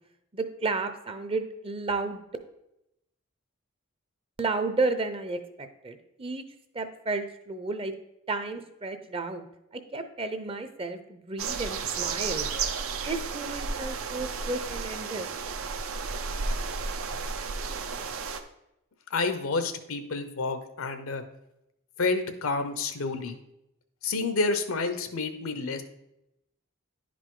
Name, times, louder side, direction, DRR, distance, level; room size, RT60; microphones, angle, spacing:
voice 1, 0.3-2.2 4.4-6.4 6.7-7.9 8.3-9.5 9.7-12.5 13.1-15.3, right 3 dB, 25° right, 9 dB, 0.6 m, -32 dB
sound 1, 11.4-18.4, right 5 dB, 80° right, 0.7 m, -32 dB
voice 2, 19.1-21.2 22.0-23.4 24.0-25.8, left 3 dB, 80° left, 9 dB, 0.8 m, -29 dB
10.5 x 5.1 x 3.7 m, 0.86 s
head